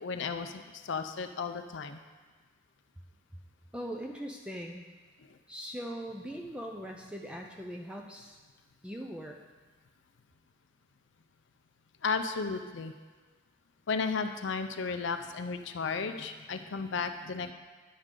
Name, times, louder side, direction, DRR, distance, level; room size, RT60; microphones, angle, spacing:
voice 1, 0.0-2.0 12.0-12.9 13.9-17.5, left 5 dB, 65° left, 8 dB, 0.5 m, -34 dB
voice 2, 3.7-4.8 5.5-8.4 8.8-9.4, equal, 5° right, 1 dB, 0.4 m, -40 dB
10.5 x 6.6 x 3.7 m, 1.4 s
head